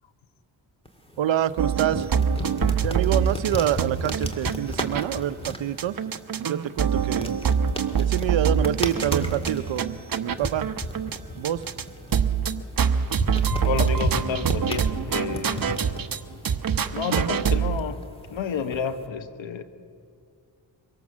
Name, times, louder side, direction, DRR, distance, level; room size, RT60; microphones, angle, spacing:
sound 1, 0.9-19.1, left 1 dB, 10° left, 2.2 m, -35 dB
voice 1, 1.2-2.1 2.8-6.0 6.4-7.3 8.0-10.7 11.3-11.6, right 11 dB, 80° right, 15 dB, 0.7 m, -26 dB
sound 2, 1.6-5.2 5.5-5.6 5.8-11.2 11.4-11.8 12.1-16.2 16.5-17.8, right 7 dB, 50° right, 0.9 m, -25 dB
voice 2, 13.6-15.7 16.9-18.0 18.3-19.6, left 6 dB, 80° left, 10 dB, 1.1 m, -30 dB
24.0 x 18.0 x 7.4 m, 2.3 s
cardioid pair, 70°, 45 cm